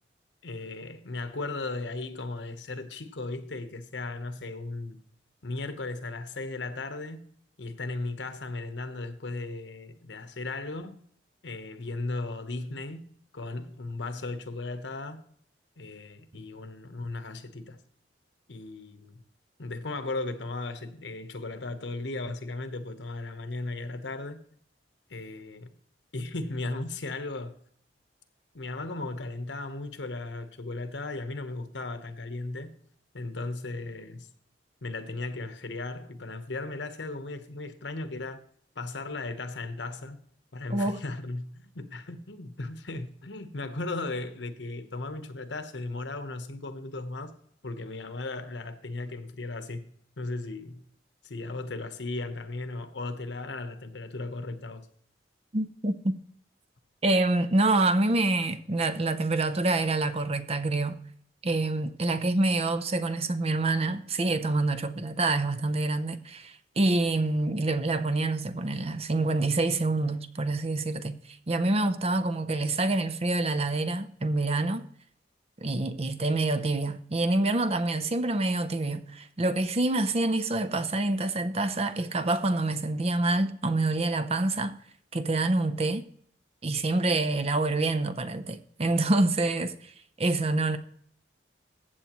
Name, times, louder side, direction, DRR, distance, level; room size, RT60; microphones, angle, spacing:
voice 1, 0.4-5.0 5.4-7.3 7.6-11.0 11.4-15.2 15.8-17.8 18.5-19.2 19.6-24.4 25.1-25.7 26.1-27.6 28.5-32.7 33.1-34.3 34.8-38.4 38.7-40.2 40.5-47.3 47.6-49.9 50.2-50.8 51.2-54.9, left 2 dB, 85° left, 1.0 m, -36 dB
voice 2, 55.5-56.2 57.0-61.0 61.4-71.2 71.5-74.9 75.6-84.8 85.1-86.1 86.6-89.7 90.2-90.8, right 2 dB, 35° right, 0.6 m, -26 dB
15.0 x 8.0 x 3.0 m
head